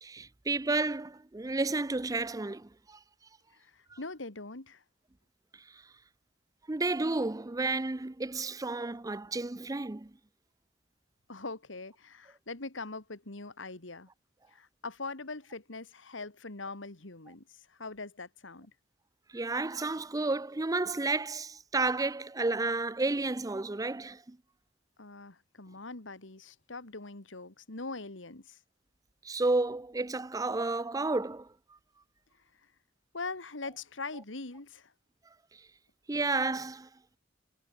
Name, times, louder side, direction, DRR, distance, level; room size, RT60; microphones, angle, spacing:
voice 1, 0.0-3.0 6.7-10.1 19.3-24.4 29.2-31.5 36.1-36.9, right 3 dB, 20° right, 0.6 m, -31 dB
voice 2, 3.5-4.8 11.3-14.1 14.5-18.7 25.0-28.6 33.1-34.9, left 3 dB, 90° left, 2.3 m, -42 dB
head